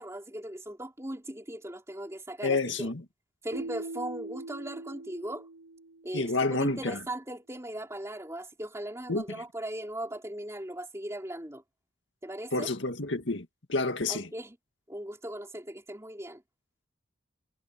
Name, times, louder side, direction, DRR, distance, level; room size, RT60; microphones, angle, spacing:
voice 1, 0.0-2.9 3.4-5.5 6.0-11.6 12.2-12.7 14.1-14.6 14.9-16.4, right 1 dB, 15° right, 3.3 m, -38 dB
voice 2, 2.4-3.0 6.1-7.0 9.1-9.2 12.5-14.3, left 3 dB, 70° left, 2.0 m, -29 dB
Keyboard (musical), 3.5-6.4, right 2 dB, 65° right, 0.9 m, -42 dB
head